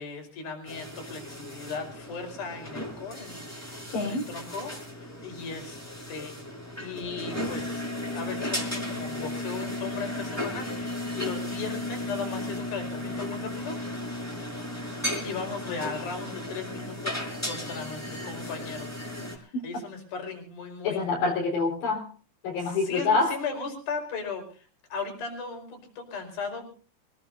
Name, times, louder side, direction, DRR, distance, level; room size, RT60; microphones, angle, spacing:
voice 1, 0.0-5.8 6.1-6.3 6.8-7.8 8.1-13.8 14.9-21.0 22.5-26.7, left 4 dB, 55° left, 4 dB, 6.5 m, -37 dB
sound 1, 0.7-19.4, left 1 dB, 5° left, 5.2 m, -35 dB
voice 2, 3.9-4.3 20.8-22.1 22.4-23.4, left 4 dB, 70° left, -2 dB, 6.0 m, -26 dB
26.5 x 18.5 x 2.7 m, 0.39 s
omnidirectional pair, 5.1 m